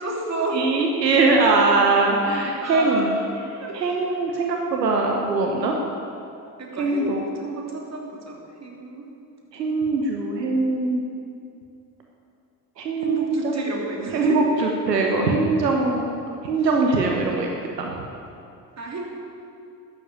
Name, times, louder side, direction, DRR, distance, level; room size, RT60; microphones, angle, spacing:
voice 1, 0.0-0.6 2.6-3.3 3.6-4.2 6.6-9.1 13.0-14.4 16.6-16.7 18.8-19.0, right 2 dB, 35° right, -1 dB, 3.2 m, -31 dB
voice 2, 0.5-3.1 3.7-5.7 6.8-7.2 9.5-11.0 12.8-13.6 14.1-14.4 14.9-16.1 16.4-17.5 17.8-17.9, right 3 dB, 85° right, 1 dB, 1.1 m, -21 dB
12.5 x 7.8 x 8.7 m, 2.6 s
figure-of-eight pair, 55°, 48 cm